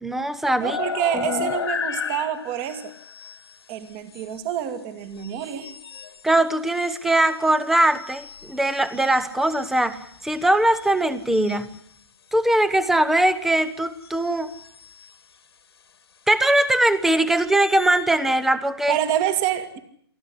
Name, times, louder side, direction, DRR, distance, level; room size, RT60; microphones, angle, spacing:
voice 1, 0.0-0.8 1.1-1.5 6.2-11.8 12.3-14.5 16.3-19.0, right 1 dB, ahead, 15 dB, 1.0 m, -21 dB
sound 1, 0.6-3.4 4.1-4.2 5.2-6.2 8.0-10.0 10.8-10.9 11.3-11.6 14.0-14.1 14.5-15.0 17.3-18.0, left 6 dB, 70° left, 2.0 m, -33 dB
voice 2, 0.6-2.9 3.7-5.7 18.9-19.8, right 11 dB, 25° right, 10 dB, 2.3 m, -27 dB
23.5 x 15.0 x 9.9 m, 0.66 s
hypercardioid pair, 145°, 14 cm